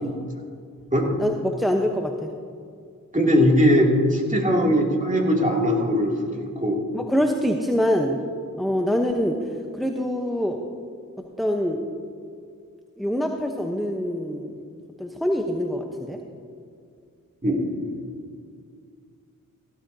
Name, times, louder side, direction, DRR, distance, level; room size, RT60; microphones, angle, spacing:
voice 1, 1.2-2.3 4.5-4.7 6.9-8.2 8.6-10.6 11.2-11.8 13.0-14.6 15.0-16.2, equal, ahead, 3 dB, 0.9 m, -25 dB
voice 2, 3.1-6.8 17.4-17.9, equal, 20° right, -1 dB, 2.7 m, -20 dB
15.5 x 13.0 x 2.8 m, 2.3 s
cardioid pair, 40°, 34 cm